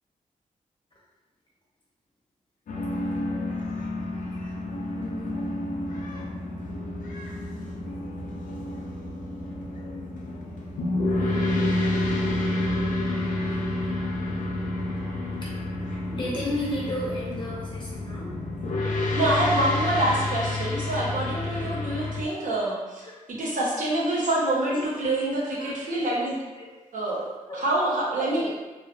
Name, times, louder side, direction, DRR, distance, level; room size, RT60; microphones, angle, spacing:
sound 1, 2.7-22.2, left 2 dB, 70° left, 0.4 m, -29 dB
voice 1, 4.9-5.3 15.4-15.5 16.1-18.4 21.4-21.8 23.0-23.3 24.1-24.3 24.7-25.2 25.6-25.8 26.5-26.7 27.5-27.7, left 1 dB, 35° left, -6 dB, 0.8 m, -34 dB
voice 2, 19.2-26.4 26.9-28.5, right 1 dB, 70° right, -5 dB, 0.7 m, -26 dB
2.4 x 2.3 x 2.3 m, 1.2 s
cardioid pair, 85°, 14 cm